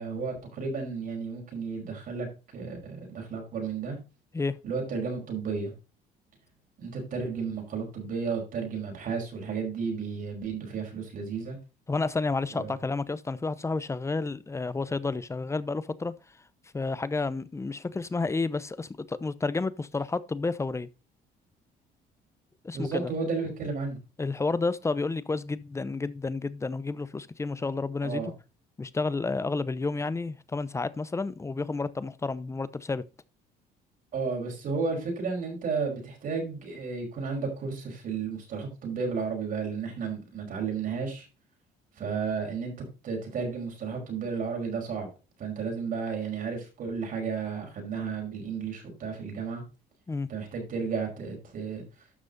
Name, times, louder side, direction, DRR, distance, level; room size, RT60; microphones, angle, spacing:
voice 1, 0.0-2.3 2.5-4.0 4.6-5.7 6.8-11.6 12.5-12.7 22.7-24.0 28.0-28.3 34.1-41.3 42.0-45.1 45.4-49.6 50.3-51.8, right 5 dB, 55° right, 5.5 m, -33 dB
voice 2, 11.9-16.1 16.7-20.9 22.6-23.1 24.2-28.3 28.8-33.0 50.1-50.3, left 3 dB, 15° left, 0.7 m, -30 dB
12.5 x 6.1 x 4.0 m
cardioid pair, 110°, 17 cm